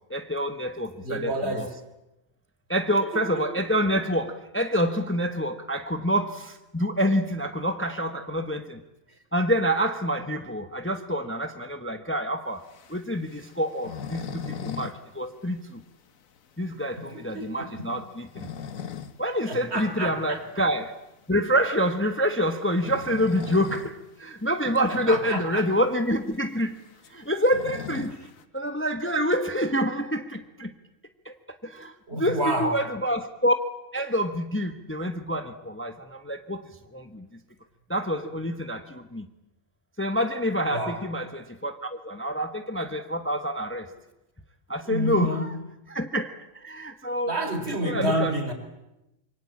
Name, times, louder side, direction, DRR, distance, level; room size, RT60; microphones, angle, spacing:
voice 1, 0.1-1.7 2.7-8.8 9.3-12.6 12.9-15.8 16.6-18.5 19.2-21.0 21.3-26.8 27.1-28.2 28.5-30.7 31.2-31.3 31.6-33.5 33.9-37.3 37.9-39.3 40.0-43.9 44.7-45.5 45.9-47.3 47.8-48.3, equal, 10° left, 7 dB, 1.2 m, -27 dB
voice 2, 1.0-1.7 3.1-3.5 17.0-17.9 19.5-20.4 24.9-25.7 32.1-32.7 40.7-41.0 44.9-45.5 47.3-48.5, right 1 dB, 50° right, 6 dB, 4.1 m, -29 dB
sound 1, 12.6-15.0 15.3-15.4 15.8-15.9 16.4-16.5 18.0-19.2 19.6-19.7 21.3-21.5 22.7-24.0 24.3-24.4 24.7-24.8 25.5-25.6 25.8-28.4, left 7 dB, 80° left, 1.6 m, -38 dB
26.5 x 23.5 x 8.7 m, 0.92 s
omnidirectional pair, 1.4 m